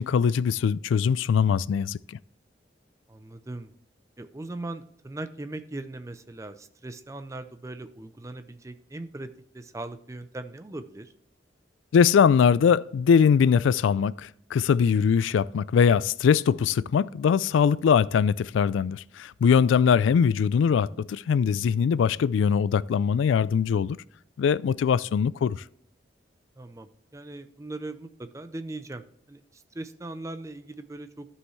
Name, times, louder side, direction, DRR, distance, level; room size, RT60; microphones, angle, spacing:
voice 1, 0.0-2.2 11.9-24.0 24.4-25.6, left 7 dB, 85° left, 0.3 m, -22 dB
voice 2, 3.1-3.7 4.2-9.3 9.5-11.1 19.8-19.9 26.6-31.3, right 2 dB, 15° right, 0.4 m, -39 dB
13.0 x 5.6 x 3.1 m
head